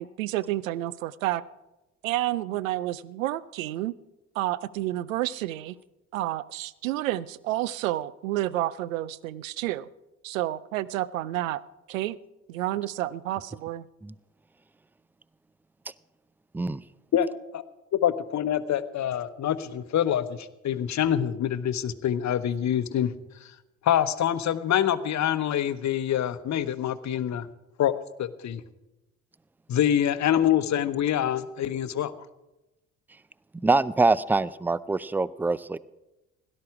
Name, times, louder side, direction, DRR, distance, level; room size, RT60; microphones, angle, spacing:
voice 1, 0.0-1.4 2.0-3.9 4.3-5.7 6.1-9.9 10.2-11.6 11.9-12.2 12.5-13.9, right 15 dB, 80° right, 20 dB, 0.6 m, -30 dB
voice 2, 17.9-23.1 23.8-27.5 27.8-27.9 28.2-28.6 29.7-32.1, left 10 dB, 45° left, 13 dB, 1.0 m, -25 dB
voice 3, 33.6-35.8, right 3 dB, 5° right, 20 dB, 0.4 m, -24 dB
17.0 x 12.0 x 4.8 m, 0.99 s
hypercardioid pair, 55°, 39 cm